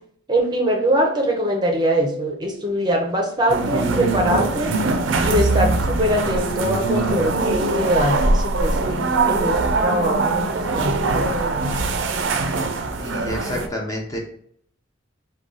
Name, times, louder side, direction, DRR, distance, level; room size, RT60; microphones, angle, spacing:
voice 1, 0.3-4.7 5.2-11.8, equal, 20° right, 1 dB, 0.6 m, -23 dB
sound 1, 3.5-13.7, right 3 dB, 75° right, 0.5 m, -22 dB
voice 2, 13.0-14.2, equal, 15° left, 0 dB, 0.6 m, -29 dB
4.8 x 2.3 x 3.8 m, 0.65 s
head